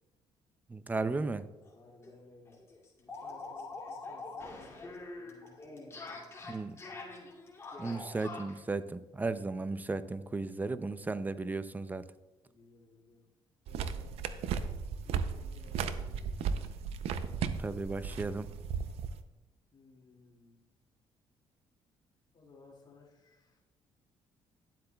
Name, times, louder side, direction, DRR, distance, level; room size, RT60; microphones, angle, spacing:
voice 1, 0.7-1.5 6.5-6.8 7.8-12.1 17.6-18.5, right 3 dB, 15° right, 14 dB, 0.4 m, -35 dB
sound 1, 1.6-1.7 2.0-2.1 2.5-8.6, left 3 dB, 25° left, 2.5 m, -45 dB
voice 2, 1.7-2.6 3.0-7.2 12.4-13.3 13.6-14.2 15.0-16.8 19.7-20.6 22.3-23.6, left 3 dB, 45° left, -3 dB, 2.2 m, -59 dB
sound 2, 13.7-19.2, right 6 dB, 80° right, 0.5 m, -35 dB
11.5 x 7.8 x 2.3 m, 1.1 s
cardioid pair, 85°, 10 cm